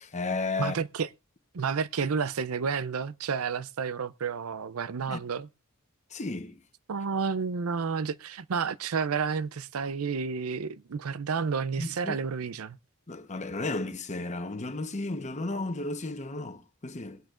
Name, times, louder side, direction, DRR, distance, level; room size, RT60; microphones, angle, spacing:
voice 1, 0.0-0.8 5.1-5.2 6.1-6.6 11.8-12.2 13.1-17.2, left 2 dB, 35° left, 1.0 m, -33 dB
voice 2, 0.6-1.1 1.5-5.5 6.9-12.8, right 5 dB, 90° right, 0.5 m, -30 dB
21.5 x 8.9 x 2.5 m
head